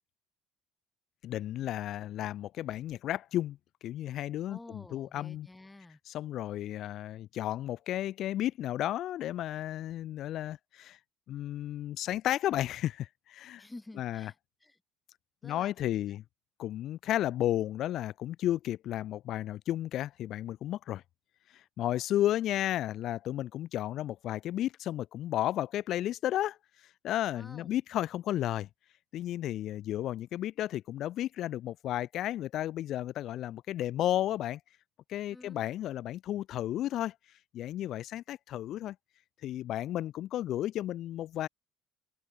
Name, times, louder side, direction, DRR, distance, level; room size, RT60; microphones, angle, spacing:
voice 1, 1.2-3.6 3.8-5.5 6.1-11.0 11.3-13.6 14.0-14.3 15.4-16.2 16.6-21.0 21.5-26.6 27.0-28.7 29.1-34.6 35.1-37.1 37.5-39.0 39.4-41.5, left 13 dB, 60° left, 0.4 m, -33 dB
voice 2, 4.5-6.0 13.6-14.8 15.4-16.2 27.3-27.8 35.3-35.6, left 2 dB, 10° left, 1.2 m, -51 dB
cardioid pair, 105°, 0 cm